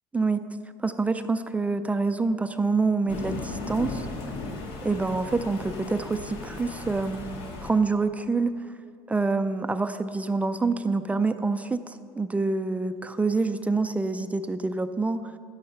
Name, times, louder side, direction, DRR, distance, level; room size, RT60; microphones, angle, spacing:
voice 1, 0.8-4.1 4.8-7.3 7.6-8.5 9.1-15.2, right 3 dB, 15° right, 10 dB, 0.4 m, -26 dB
Thunder, 3.1-7.7, left 3 dB, 70° left, 1.9 m, -36 dB
12.5 x 9.8 x 5.8 m, 2.2 s
cardioid pair, 125°, 10 cm